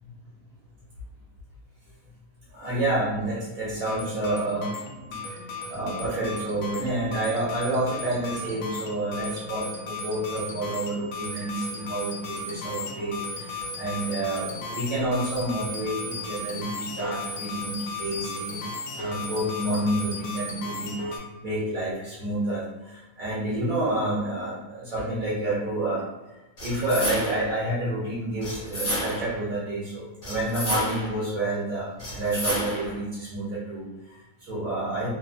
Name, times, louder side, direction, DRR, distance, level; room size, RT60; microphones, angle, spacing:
voice 1, 2.5-4.7 5.0-5.4 5.7-18.6 18.9-35.1, right 1 dB, 65° right, -7 dB, 1.2 m, -29 dB
sound 1, 3.8-21.2, left 2 dB, 75° left, 0.5 m, -35 dB
sound 2, 26.6-27.5 28.4-29.4 30.2-31.2 32.0-33.0, equal, 60° left, 1.6 m, -31 dB
3.2 x 2.0 x 2.4 m, 1.1 s
omnidirectional pair, 1.6 m